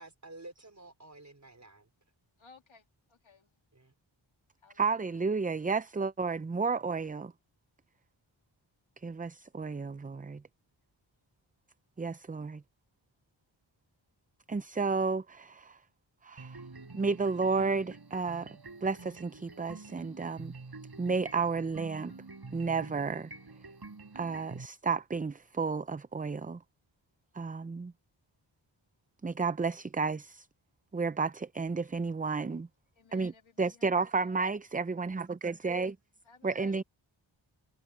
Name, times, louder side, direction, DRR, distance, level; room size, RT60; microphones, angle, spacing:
voice 1, 0.0-1.9 3.7-3.9, right 2 dB, 35° right, 4.8 m, -51 dB
voice 2, 2.4-3.5 4.6-4.9 33.0-33.9 34.2-34.4 36.3-36.8, left 4 dB, 70° left, 2.4 m, -59 dB
voice 3, 4.7-7.3 9.0-10.4 12.0-12.6 14.5-15.8 16.2-16.6 16.9-20.5 21.0-22.1 22.5-23.3 24.1-26.6 27.3-27.9 29.2-30.5 30.9-32.7 33.1-35.9 36.4-36.8, right 4 dB, 20° right, 0.5 m, -32 dB
sound 1, 16.4-24.7, right 3 dB, 50° right, 5.8 m, -48 dB
cardioid pair, 50°, 48 cm